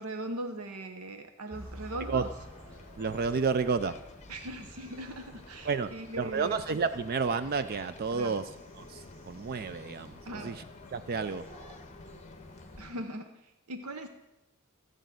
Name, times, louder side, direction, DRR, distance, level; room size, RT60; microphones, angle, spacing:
voice 1, 0.0-2.3 4.3-6.6 8.1-8.3 10.3-10.6 12.8-14.1, right 1 dB, 80° right, 7 dB, 0.9 m, -40 dB
sound 1, 1.5-12.8, equal, 15° right, 6.0 m, -50 dB
sound 2, 2.4-13.1, left 3 dB, 30° left, 0.7 m, -51 dB
voice 2, 3.0-4.0 5.6-5.9 6.2-8.5 8.8-10.6 10.9-11.4, right 5 dB, 45° right, 12 dB, 0.4 m, -31 dB
15.0 x 5.1 x 9.1 m, 0.98 s
head